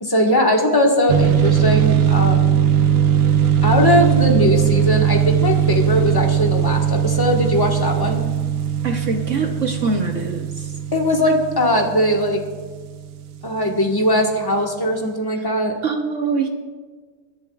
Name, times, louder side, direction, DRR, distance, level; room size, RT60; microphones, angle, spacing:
voice 1, 0.0-2.6 3.6-8.2 10.9-12.4 13.4-15.8, left 1 dB, 15° left, 0 dB, 1.0 m, -19 dB
sound 1, 1.1-13.5, right 9 dB, 70° right, 1.3 m, -19 dB
voice 2, 8.8-10.7 15.8-16.5, right 4 dB, 55° right, 4 dB, 0.9 m, -23 dB
25.5 x 11.0 x 2.4 m, 1.5 s
omnidirectional pair, 2.3 m